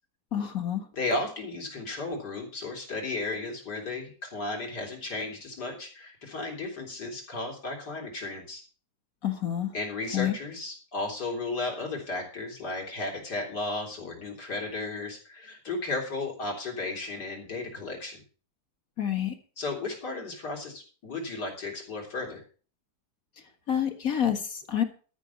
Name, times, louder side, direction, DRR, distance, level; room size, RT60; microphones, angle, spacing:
voice 1, 0.3-0.9 9.2-9.7 10.1-10.3 19.0-19.4 23.7-24.8, left 10 dB, 55° left, 6 dB, 2.0 m, -28 dB
voice 2, 0.9-8.6 9.7-18.2 19.6-22.4, left 2 dB, 70° left, 0 dB, 4.2 m, -34 dB
13.0 x 6.2 x 7.0 m, 0.40 s
omnidirectional pair, 1.8 m